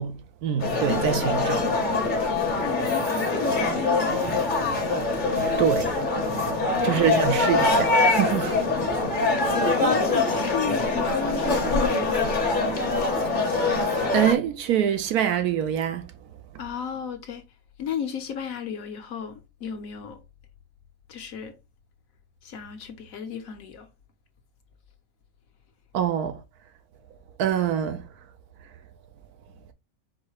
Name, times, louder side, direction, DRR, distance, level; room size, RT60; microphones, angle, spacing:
voice 1, 0.0-1.6 5.6-5.9 6.8-8.5 14.1-16.0 25.9-26.4 27.4-28.0, right 9 dB, 75° right, 1.2 m, -25 dB
sound 1, 0.6-14.3, left 3 dB, 40° left, 0.9 m, -24 dB
voice 2, 2.6-4.4 6.7-7.2 9.8-12.2 16.6-17.4 17.8-20.2 21.1-21.5 22.4-23.9, left 7 dB, 65° left, 1.2 m, -34 dB
sound 2, 2.8-7.9, right 9 dB, 55° right, 0.8 m, -38 dB
4.8 x 2.1 x 4.6 m
omnidirectional pair, 1.6 m